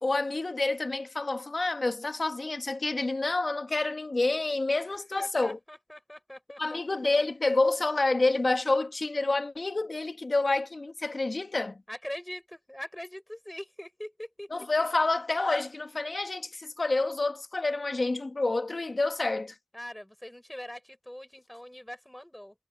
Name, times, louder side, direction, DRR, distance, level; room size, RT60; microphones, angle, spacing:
voice 1, 0.0-5.6 6.6-11.8 14.5-19.5, left 2 dB, 70° left, 1.5 m, -28 dB
voice 2, 5.2-6.8 11.9-14.5 19.7-22.5, equal, 15° left, 7.3 m, -42 dB
wide cardioid pair, 40°, 0 cm